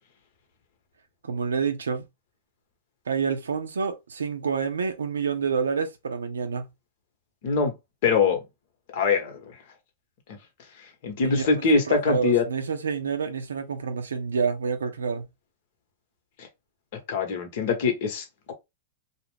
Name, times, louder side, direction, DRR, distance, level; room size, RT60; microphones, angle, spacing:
voice 1, 1.2-2.0 3.1-6.7 11.2-15.3, right 5 dB, 90° right, 0.5 m, -28 dB
voice 2, 7.4-7.7 8.0-8.4 8.9-9.5 10.3-10.4 11.0-12.4 17.1-18.5, left 5 dB, 60° left, 0.9 m, -23 dB
2.4 x 2.0 x 3.2 m
hypercardioid pair, 115°, 0 cm